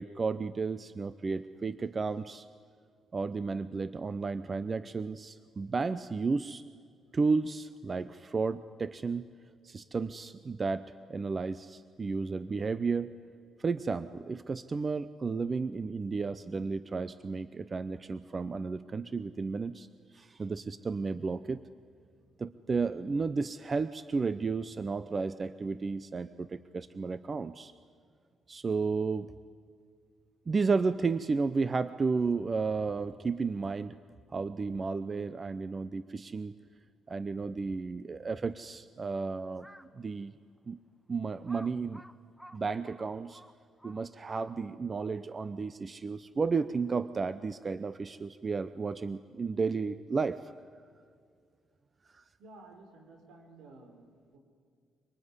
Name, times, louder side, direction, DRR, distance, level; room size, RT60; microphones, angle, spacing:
voice 1, 0.0-2.5 3.1-6.6 7.1-9.3 9.6-13.1 13.6-19.9 20.1-21.6 22.4-27.7 28.5-29.3 30.5-34.0 34.3-36.5 37.1-39.7 39.9-40.3 40.7-40.8 41.1-42.0 42.5-43.4 43.8-50.4 52.1-52.2, right 4 dB, 35° right, 14 dB, 0.7 m, -33 dB
Crow, 39.5-40.0 40.6-40.7 41.4-44.9, equal, ahead, 1.1 m, -54 dB
voice 2, 52.4-54.4, right 2 dB, 80° right, 5 dB, 4.7 m, -53 dB
25.5 x 20.0 x 9.8 m, 2.2 s
cardioid pair, 90°, 0 cm